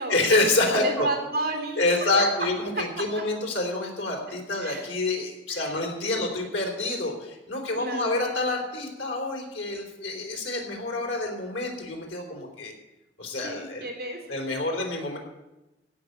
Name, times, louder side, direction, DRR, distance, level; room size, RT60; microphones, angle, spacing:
voice 1, 0.1-1.1 1.8-12.7 13.2-13.9 14.3-15.2, left 2 dB, 80° left, 2 dB, 3.7 m, -27 dB
voice 2, 0.7-1.8 4.6-4.9 5.5-5.7 6.1-6.2 7.8-8.2 13.4-14.4, right 2 dB, 55° right, 2 dB, 3.4 m, -32 dB
16.5 x 6.1 x 9.2 m, 1.0 s
head